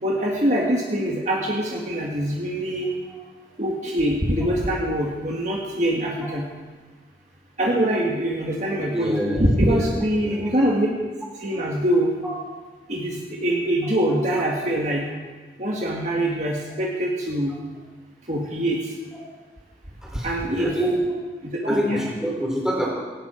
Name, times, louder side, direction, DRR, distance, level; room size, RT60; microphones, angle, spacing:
voice 1, 0.0-2.9 3.6-6.5 7.6-10.9 11.4-12.1 12.9-15.0 15.6-17.6 18.3-18.8 20.2-20.7 21.4-22.0, right 1 dB, 40° right, -2 dB, 2.0 m, -24 dB
voice 2, 8.8-9.9 10.2-10.6 12.2-12.3 20.0-21.0 21.7-22.9, equal, 5° right, -4 dB, 4.3 m, -26 dB
18.0 x 17.5 x 4.6 m, 1.3 s
head